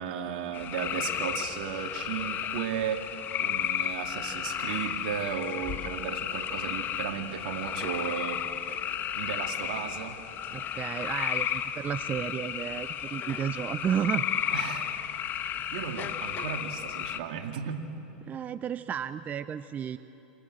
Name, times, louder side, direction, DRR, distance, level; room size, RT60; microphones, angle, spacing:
voice 1, 0.0-3.1 3.4-8.4 8.7-8.8 9.1-10.2 14.5-14.9 15.7-17.8, right 8 dB, 65° right, 4 dB, 2.1 m, -35 dB
sound 1, 0.5-17.2, left 10 dB, 40° left, 1.3 m, -33 dB
voice 2, 10.5-14.3 18.2-20.0, right 9 dB, 30° right, 13 dB, 0.7 m, -32 dB
28.0 x 26.5 x 7.6 m, 3.0 s
hypercardioid pair, 105°, 5 cm